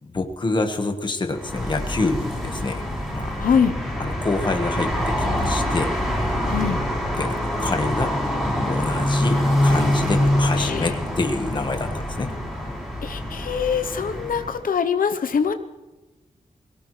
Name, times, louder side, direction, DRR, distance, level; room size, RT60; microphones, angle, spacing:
voice 1, 0.0-2.9 3.1-3.3 4.0-6.0 7.2-12.3, left 3 dB, 35° left, 5 dB, 1.4 m, -27 dB
sound 1, 1.3-14.6, left 1 dB, 5° right, 5.4 m, -25 dB
voice 2, 3.4-3.8 6.5-6.8 10.6-10.9 13.0-15.5, left 6 dB, 90° left, 8 dB, 0.8 m, -23 dB
22.0 x 17.5 x 3.2 m, 1.1 s
wide cardioid pair, 180°, 14 cm